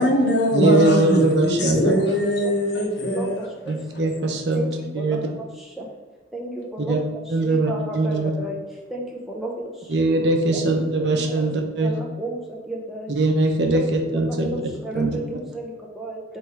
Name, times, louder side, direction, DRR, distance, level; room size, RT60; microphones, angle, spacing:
voice 1, 0.0-3.5 3.9-4.0, left 1 dB, 75° left, 0.8 m, -21 dB
voice 2, 0.5-1.9 3.7-4.6 4.9-5.2 6.9-7.0 7.3-8.3 9.9-11.9 13.1-13.8 14.1-14.5 14.9-15.1, right 2 dB, 75° right, 0.7 m, -21 dB
voice 3, 1.6-2.0 2.4-2.5 3.1-3.8 4.5-5.9 6.3-8.6 8.9-9.9 10.5-11.4 11.8-13.2 13.7-13.8 14.1-16.4, right 1 dB, ahead, 0.7 m, -33 dB
3.5 x 3.1 x 4.6 m
head